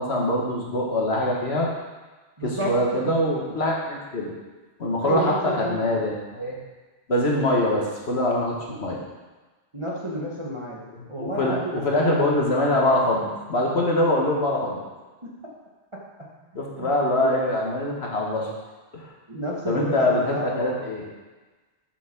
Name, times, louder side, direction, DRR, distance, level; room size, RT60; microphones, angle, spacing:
voice 1, 0.0-1.7 2.4-4.3 4.8-6.5 7.1-9.0 11.2-14.8 16.5-18.5 18.9-19.1 19.7-21.0, left 1 dB, 60° left, -2 dB, 1.7 m, -23 dB
voice 2, 2.4-3.1 5.0-6.0 8.7-8.8 9.7-12.3 15.2-15.4 15.9-16.0 16.6-17.4 19.3-20.8, equal, 25° right, -3 dB, 1.3 m, -31 dB
7.2 x 5.7 x 5.9 m, 1.3 s
omnidirectional pair, 1.2 m